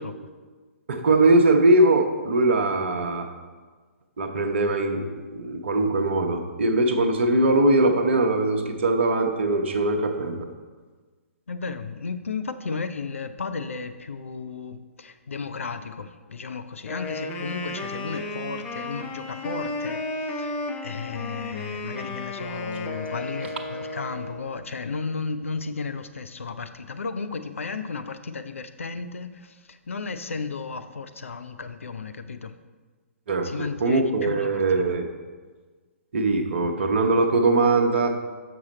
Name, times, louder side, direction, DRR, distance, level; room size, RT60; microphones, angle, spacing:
voice 1, 0.9-3.3 4.2-10.5 33.3-35.1 36.1-38.2, right 2 dB, 55° right, 4 dB, 0.8 m, -21 dB
voice 2, 11.5-32.5 33.4-34.9, left 4 dB, 70° left, 9 dB, 0.5 m, -34 dB
Wind instrument woodwind instrument, 16.8-24.5, left 2 dB, 20° left, 0.6 m, -33 dB
6.1 x 5.9 x 4.1 m, 1.4 s
figure-of-eight pair, 120°, 7 cm